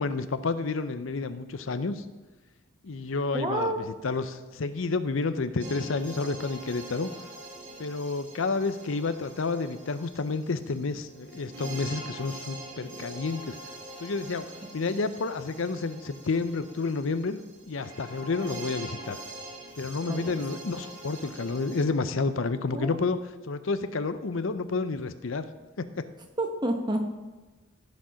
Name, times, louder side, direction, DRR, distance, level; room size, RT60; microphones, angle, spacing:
voice 1, 0.0-2.1 2.8-7.1 7.8-13.6 14.0-14.4 14.7-19.2 19.8-23.2 23.4-25.5 25.8-26.1, left 3 dB, 70° left, 11 dB, 0.6 m, -30 dB
voice 2, 3.3-3.8 20.1-20.4 22.7-23.2 26.4-27.1, right 1 dB, 20° right, 4 dB, 1.1 m, -30 dB
sound 1, 5.6-21.8, right 2 dB, 55° right, 2.5 m, -44 dB
15.0 x 5.2 x 5.8 m, 1.2 s
head